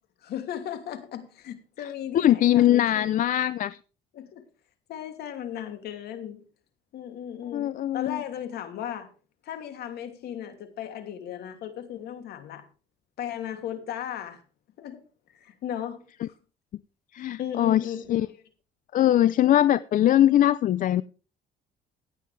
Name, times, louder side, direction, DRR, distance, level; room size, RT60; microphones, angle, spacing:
voice 1, 0.2-3.2 4.1-4.4 4.9-6.4 6.9-9.1 9.4-12.6 13.2-14.4 14.8-15.0 15.3-16.0 17.4-18.4, left 10 dB, 70° left, 2.8 m, -36 dB
voice 2, 2.1-3.8 7.5-8.2 17.1-17.8 18.1-18.3 18.9-21.0, left 12 dB, 55° left, 0.5 m, -21 dB
16.0 x 9.5 x 3.4 m
cardioid pair, 110°, 17 cm